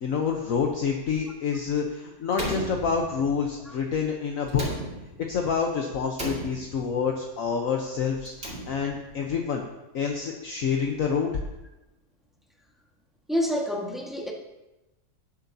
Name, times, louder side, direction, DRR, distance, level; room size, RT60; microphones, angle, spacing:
voice 1, 0.0-4.6 5.3-9.6 9.9-11.3, left 6 dB, 60° left, 1 dB, 1.2 m, -27 dB
Slam, 2.3-3.5 4.5-5.4 6.1-7.0 8.2-9.1, right 1 dB, 40° right, 2.7 m, -35 dB
voice 2, 13.3-14.3, equal, ahead, -1 dB, 1.4 m, -28 dB
18.5 x 7.9 x 2.8 m, 0.99 s
omnidirectional pair, 1.7 m